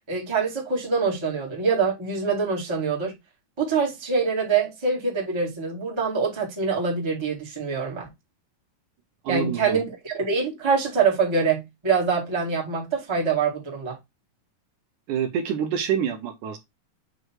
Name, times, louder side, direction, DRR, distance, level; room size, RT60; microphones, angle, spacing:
voice 1, 0.1-3.1 3.6-8.1 9.3-14.0, right 5 dB, 10° right, 1.5 m, -25 dB
voice 2, 9.2-9.8 15.1-16.6, right 8 dB, 70° right, 2.2 m, -26 dB
8.0 x 3.0 x 4.5 m
omnidirectional pair, 4.1 m